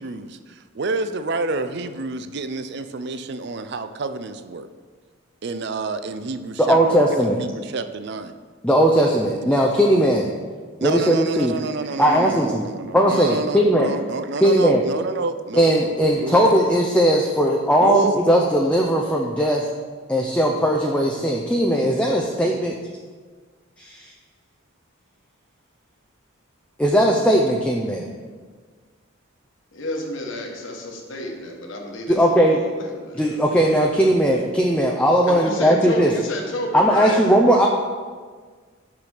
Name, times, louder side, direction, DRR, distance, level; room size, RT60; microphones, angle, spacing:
voice 1, 0.0-4.7 5.4-8.3 10.8-16.5 17.8-18.2, right 3 dB, 50° right, 11 dB, 0.4 m, -28 dB
voice 2, 6.6-7.4 8.6-10.3 10.8-11.6 12.0-12.7 12.9-13.9 14.4-14.8 15.5-19.7 20.1-22.8 23.8-24.1 26.8-28.1 32.1-32.6 33.2-36.1 36.7-37.7, equal, 5° left, -1 dB, 0.5 m, -18 dB
voice 3, 29.7-33.4 34.0-34.1 35.3-37.2, left 1 dB, 60° left, 1 dB, 1.3 m, -30 dB
6.0 x 6.0 x 6.4 m, 1.6 s
head